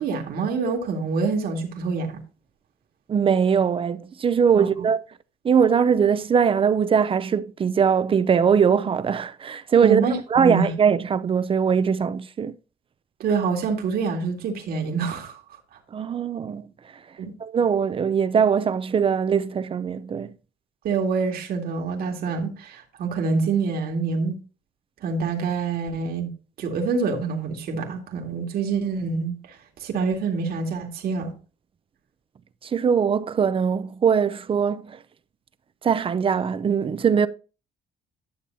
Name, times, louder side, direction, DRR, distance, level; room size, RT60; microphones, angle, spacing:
voice 1, 0.0-2.2 4.5-4.8 9.8-10.7 13.2-15.4 17.2-17.3 20.8-24.4 25.0-26.3 26.6-29.3 29.8-31.3, right 5 dB, 65° right, 2.2 m, -26 dB
voice 2, 3.1-5.0 5.4-12.5 15.9-16.6 17.4-20.3 32.6-35.0 35.8-37.3, right 7 dB, 30° right, 0.6 m, -21 dB
11.5 x 7.1 x 2.7 m
cardioid pair, 110°, 17 cm